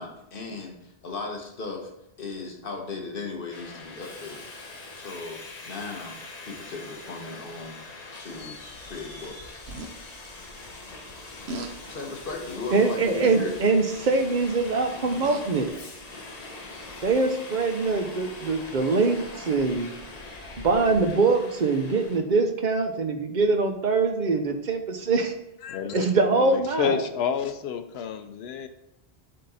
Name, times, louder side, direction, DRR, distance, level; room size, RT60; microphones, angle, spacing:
voice 1, 0.0-1.9 2.2-4.5 4.9-7.8 8.2-9.5 11.9-13.5, left 3 dB, 60° left, 2 dB, 1.2 m, -37 dB
Subway metro underground, 3.5-22.2, left 2 dB, 40° left, 1.0 m, -42 dB
sound 1, 9.7-9.9 11.5-11.7 12.2-12.5 13.9-14.2 14.9-15.6 16.5-16.6, right 2 dB, 85° right, 1.1 m, -37 dB
voice 2, 12.7-15.7 17.0-19.9 20.6-25.3 25.9-27.0, right 3 dB, 50° right, 6 dB, 0.8 m, -23 dB
voice 3, 25.6-28.7, left 8 dB, 80° left, 10 dB, 0.8 m, -30 dB
7.7 x 3.7 x 4.1 m, 0.85 s
omnidirectional pair, 1.1 m